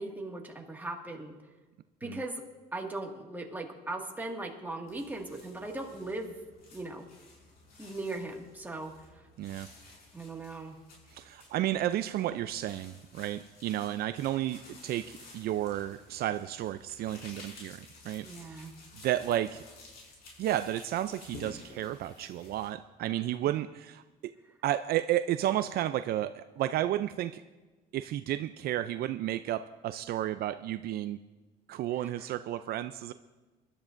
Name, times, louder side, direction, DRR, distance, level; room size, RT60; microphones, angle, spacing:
voice 1, 0.0-1.3 2.0-2.4 2.7-6.4 6.7-7.1 7.8-8.9 10.1-10.8 18.2-18.7, right 2 dB, 10° right, 1 dB, 1.9 m, -38 dB
sound 1, 4.9-22.7, left 2 dB, 65° left, 5.7 m, -53 dB
voice 2, 9.4-9.7 11.1-17.8 18.0-18.5 19.0-19.6 20.4-24.0 24.6-27.4 27.9-31.2 31.7-33.1, right 13 dB, 65° right, 11 dB, 0.5 m, -32 dB
24.0 x 12.0 x 2.6 m, 1.2 s
cardioid pair, 110°, 17 cm